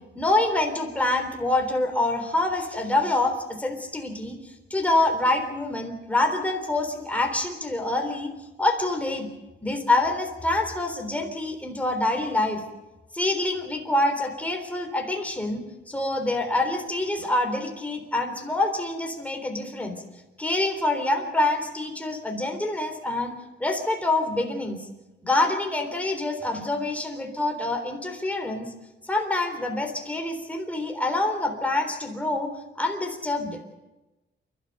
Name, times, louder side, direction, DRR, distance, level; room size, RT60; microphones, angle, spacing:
voice 1, 0.2-8.3 8.6-9.3 9.6-12.6 13.1-20.0 20.4-23.3 23.6-24.9 25.2-28.7 29.0-32.5 32.8-33.7, left 2 dB, 5° left, 3 dB, 3.7 m, -26 dB
29.0 x 12.5 x 8.1 m, 1.0 s
cardioid pair, 110°, 20 cm